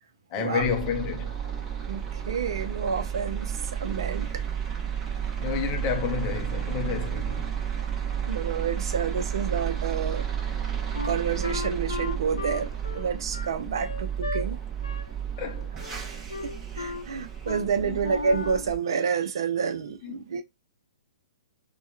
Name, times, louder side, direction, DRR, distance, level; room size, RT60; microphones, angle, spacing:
voice 1, 0.3-1.3 5.4-7.5 15.4-15.7 17.8-18.0 20.0-20.1, left 7 dB, 30° left, 0.6 m, -30 dB
sound 1, 0.6-18.8, right 8 dB, 15° right, 0.8 m, -32 dB
voice 2, 1.9-3.5 3.8-4.4 7.8-7.9 8.3-10.3 11.0-12.7 12.9-14.6 16.0-20.4, right 6 dB, 55° right, 0.6 m, -29 dB
Wind instrument woodwind instrument, 10.9-14.4 14.8-15.1 15.4-16.0 16.3-17.1 17.4-17.7 18.0-18.7, left 4 dB, 70° left, 0.6 m, -36 dB
4.2 x 2.2 x 2.2 m
figure-of-eight pair, 115°, 3 cm